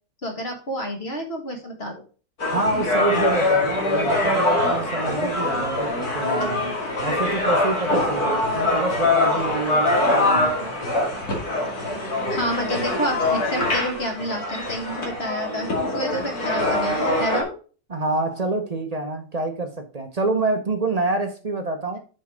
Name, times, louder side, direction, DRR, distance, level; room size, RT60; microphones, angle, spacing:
voice 1, 0.2-2.0 12.3-17.5, equal, 35° left, 1.8 m, -29 dB
sound 1, 2.4-17.4, left 2 dB, 55° left, 2.9 m, -23 dB
voice 2, 2.5-10.8 17.9-22.0, right 3 dB, 45° right, 0.5 m, -27 dB
7.3 x 5.4 x 5.0 m
omnidirectional pair, 2.0 m